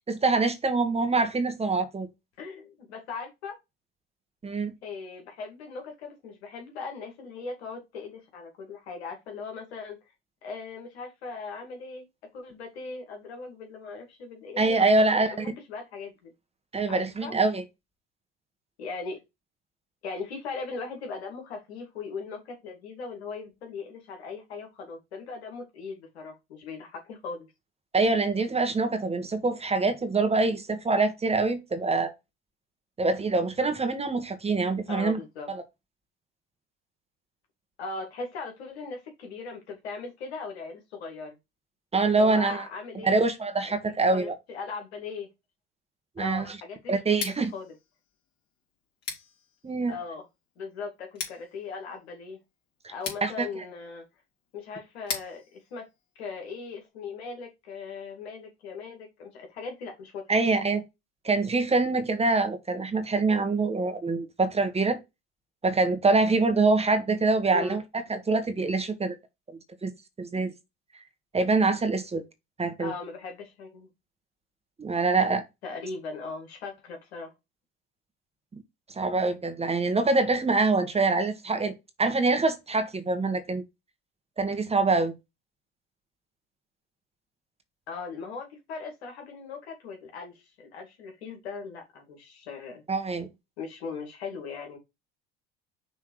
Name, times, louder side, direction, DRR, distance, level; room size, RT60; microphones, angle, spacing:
voice 1, 0.1-2.1 4.4-4.7 14.6-15.5 16.7-17.6 27.9-32.1 33.0-35.2 35.5-35.6 41.9-42.7 43.0-44.3 46.2-46.4 46.9-47.5 49.6-50.0 52.8-52.9 53.2-53.5 60.3-60.8 61.2-65.0 65.6-69.1 69.8-69.9 70.2-70.5 71.3-72.2 72.6-72.9 74.8-75.4 78.9-83.6 84.4-85.1 92.9-93.3, right 3 dB, 20° right, 1.4 m, -25 dB
voice 2, 2.4-3.6 4.8-10.0 10.4-12.0 12.3-16.3 16.9-17.3 18.8-19.2 20.0-27.5 34.9-35.5 37.8-41.4 42.1-43.2 44.1-45.3 46.2-47.0 47.5-47.7 49.9-50.2 50.6-52.4 52.9-54.0 54.5-55.8 56.2-60.2 67.5-67.8 72.8-73.9 75.6-77.3 87.9-92.8 93.6-94.8, left 4 dB, 80° left, 2.3 m, -39 dB
Scissors, 47.0-56.9, left 6 dB, 50° left, 3.2 m, -43 dB
6.1 x 3.5 x 4.7 m
hypercardioid pair, 75°, 32 cm